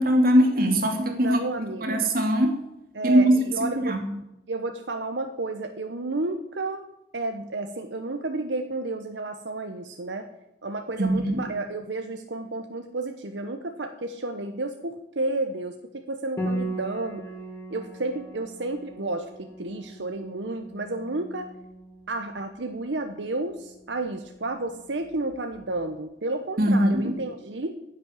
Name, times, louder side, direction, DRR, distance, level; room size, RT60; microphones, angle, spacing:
voice 1, 0.0-1.4 1.8-2.6 3.0-4.1 11.0-11.5 26.6-27.2, equal, 55° right, 4 dB, 2.5 m, -21 dB
voice 2, 1.2-2.0 2.9-4.0 4.5-6.8 7.1-10.3 10.6-17.2 17.7-21.5 22.1-27.7, right 2 dB, 90° right, 6 dB, 1.1 m, -31 dB
Piano, 16.4-25.7, right 1 dB, 15° left, 2.0 m, -39 dB
10.5 x 8.4 x 9.8 m, 0.88 s
head